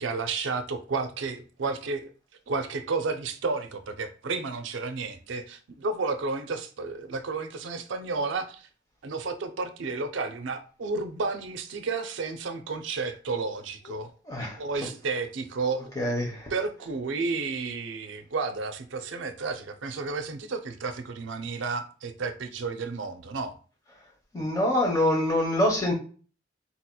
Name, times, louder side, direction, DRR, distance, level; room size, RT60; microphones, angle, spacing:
voice 1, 0.0-2.1 2.5-8.7 9.0-14.1 14.6-15.9 16.5-23.6, right 4 dB, 70° right, 9 dB, 0.5 m, -32 dB
voice 2, 14.3-14.6 16.0-16.5 24.3-25.9, left 1 dB, 20° left, -2 dB, 1.0 m, -25 dB
4.1 x 2.9 x 2.2 m, 0.39 s
head